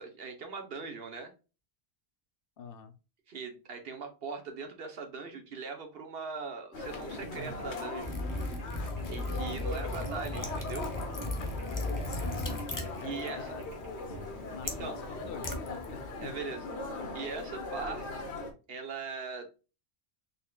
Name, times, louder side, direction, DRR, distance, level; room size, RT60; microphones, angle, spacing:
voice 1, 0.0-1.3 3.3-8.2 9.1-10.9 13.0-13.4 14.6-14.9 16.2-16.6 17.1-18.3 18.7-19.5, right 5 dB, 65° right, 6 dB, 1.1 m, -40 dB
voice 2, 2.6-2.9 12.1-13.7 14.1-14.2 14.5-16.3, left 6 dB, 65° left, 8 dB, 0.7 m, -46 dB
sound 1, 6.7-18.5, left 3 dB, 80° left, 1.2 m, -40 dB
sound 2, 7.0-15.3, right 4 dB, 80° right, 1.4 m, -50 dB
Liquid, 8.0-16.3, left 2 dB, 25° left, 0.5 m, -37 dB
4.2 x 3.4 x 2.3 m, 0.31 s
omnidirectional pair, 1.1 m